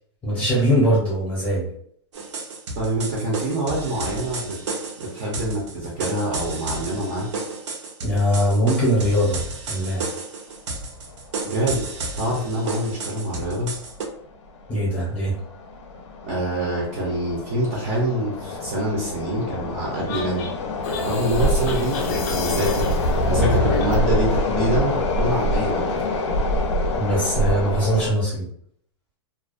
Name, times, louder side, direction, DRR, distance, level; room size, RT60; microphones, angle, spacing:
voice 1, 0.2-1.7 8.0-9.4 9.7-10.1 14.7-15.3 27.0-28.5, equal, 10° left, -6 dB, 0.7 m, -21 dB
sound 1, 2.1-14.0, right 3 dB, 85° right, 0.6 m, -32 dB
voice 2, 2.8-4.6 5.0-7.3 11.4-11.8 12.2-13.7 16.2-20.5 21.0-26.2, right 1 dB, 30° right, -3 dB, 0.5 m, -25 dB
sound 2, 11.2-11.3 11.5-11.6 12.4-12.6 12.9-13.1 13.6-14.0 14.5-28.1, left 1 dB, 90° left, 0.5 m, -25 dB
sound 3, 20.1-24.0, left 2 dB, 30° left, 0.4 m, -28 dB
2.4 x 2.2 x 2.4 m, 0.65 s
supercardioid pair, 180°, 15 cm